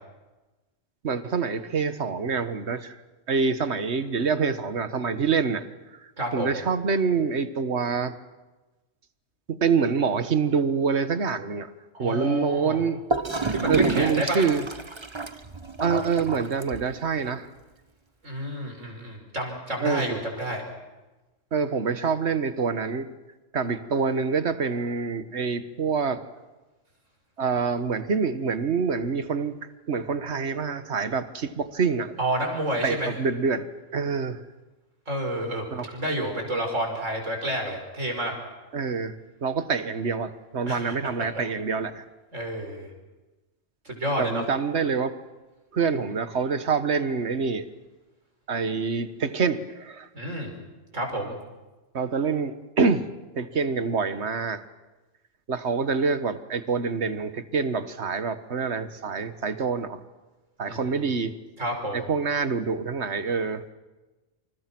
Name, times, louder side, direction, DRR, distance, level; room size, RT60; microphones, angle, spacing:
voice 1, 1.0-3.0 3.3-5.6 5.9-8.1 9.5-11.7 12.0-13.0 13.7-14.6 15.8-17.5 19.8-20.2 21.5-23.1 23.5-26.2 27.4-29.6 29.9-32.1 32.8-33.7 33.9-34.4 35.7-35.9 38.7-39.2 39.4-42.0 44.2-45.2 45.7-47.7 48.5-50.1 51.9-53.0 53.3-54.6 55.5-60.0 60.6-61.3 61.9-63.7, right 5 dB, 60° right, 11 dB, 1.7 m, -26 dB
voice 2, 6.2-6.5 11.9-12.8 13.5-14.4 18.2-20.6 32.2-33.1 35.1-38.3 40.7-41.3 42.3-42.9 43.8-44.4 50.1-50.5 50.9-51.4 60.7-60.9 61.6-62.0, right 1 dB, 75° right, 3 dB, 5.9 m, -29 dB
Gurgling / Toilet flush, 13.1-17.1, right 3 dB, 25° right, 1.1 m, -30 dB
28.0 x 28.0 x 6.1 m, 1.1 s
omnidirectional pair, 1.3 m